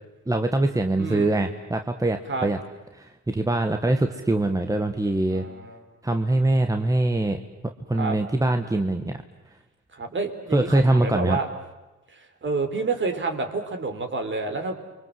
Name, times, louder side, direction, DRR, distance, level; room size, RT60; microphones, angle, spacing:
voice 1, 0.3-2.6 2.9-5.5 6.0-7.4 7.9-9.2 10.5-11.4, right 2 dB, 10° right, 6 dB, 1.5 m, -23 dB
voice 2, 1.0-1.3 2.3-2.5 5.3-5.8 8.0-8.2 9.9-11.5 12.1-14.8, right 3 dB, 40° right, 6 dB, 4.1 m, -29 dB
30.0 x 24.0 x 7.8 m, 1.1 s
cardioid pair, 90°, 30 cm